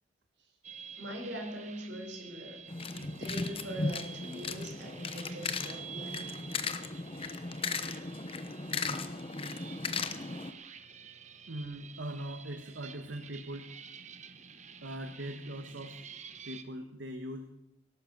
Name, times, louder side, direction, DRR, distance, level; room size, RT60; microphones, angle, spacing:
sound 1, 0.6-16.6, right 7 dB, 40° right, 1.0 m, -49 dB
voice 1, 1.0-2.6 2.9-6.3, equal, 70° right, 2 dB, 5.0 m, -42 dB
sound 2, 2.7-10.5, left 3 dB, 30° left, 0.9 m, -36 dB
voice 2, 11.5-13.7 14.8-16.0 16.4-17.5, right 1 dB, 85° right, 6 dB, 1.4 m, -41 dB
18.5 x 11.0 x 6.7 m, 0.84 s
head